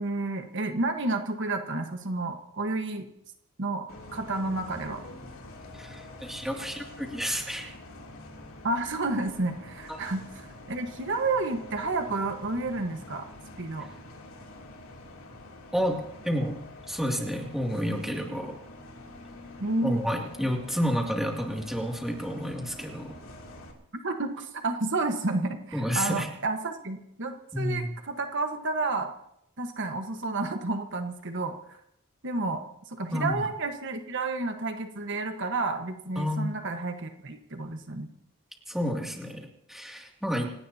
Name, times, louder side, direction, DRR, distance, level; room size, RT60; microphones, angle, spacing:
voice 1, 0.0-3.1 3.6-3.9 4.1-5.0 8.6-13.3 13.6-13.9 19.6-20.0 24.0-29.1 29.6-31.8 32.2-38.1, right 2 dB, 55° right, 5 dB, 1.4 m, -31 dB
Bus, 3.9-23.7, left 2 dB, 65° left, 3.2 m, -46 dB
voice 2, 5.7-7.7 9.9-10.0 15.7-16.6 16.9-18.6 19.8-23.1 25.7-26.3 27.5-27.9 33.1-33.4 36.2-36.5 38.7-40.4, equal, ahead, 0 dB, 2.6 m, -30 dB
27.5 x 17.5 x 2.9 m, 0.75 s
head